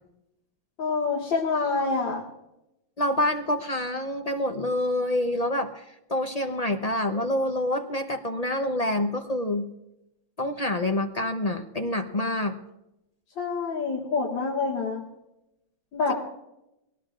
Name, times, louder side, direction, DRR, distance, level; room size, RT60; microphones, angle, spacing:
voice 1, 0.8-2.2 13.4-15.0 15.9-16.1, left 4 dB, 80° left, -4 dB, 2.6 m, -26 dB
voice 2, 3.0-9.7 10.4-12.6 16.1-16.2, left 1 dB, 40° left, 5 dB, 0.5 m, -27 dB
22.0 x 18.0 x 2.5 m, 0.88 s
omnidirectional pair, 2.0 m